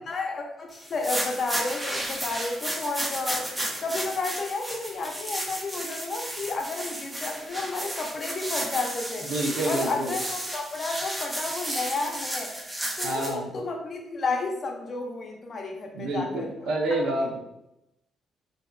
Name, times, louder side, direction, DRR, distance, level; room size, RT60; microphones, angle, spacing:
voice 1, 0.0-3.5 3.8-9.3 9.6-12.5 13.0-16.5 17.0-17.2, left 3 dB, 45° left, 1 dB, 0.5 m, -31 dB
sound 1, 0.8-13.3, right 1 dB, 15° right, 0.5 m, -33 dB
voice 2, 9.3-10.2 13.0-13.6 15.9-17.4, right 1 dB, 80° right, 1 dB, 0.5 m, -28 dB
2.7 x 2.2 x 2.2 m, 0.86 s
cardioid pair, 90°, 0 cm